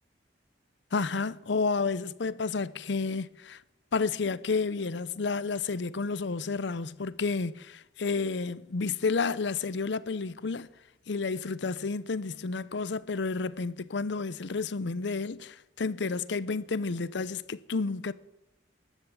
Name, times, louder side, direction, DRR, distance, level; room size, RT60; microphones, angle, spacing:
voice 1, 0.9-3.6 3.9-10.7 11.1-18.1, left 4 dB, 70° left, 0.6 m, -31 dB
15.0 x 11.0 x 7.2 m
head